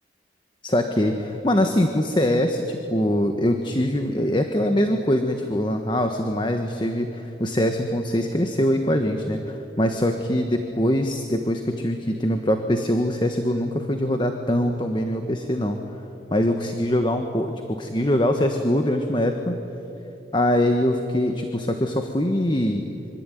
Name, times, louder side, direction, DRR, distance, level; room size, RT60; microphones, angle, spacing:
voice 1, 0.6-15.8 16.3-19.6 20.3-22.9, left 1 dB, 25° left, 5 dB, 1.4 m, -23 dB
26.0 x 24.5 x 9.3 m, 2.9 s
head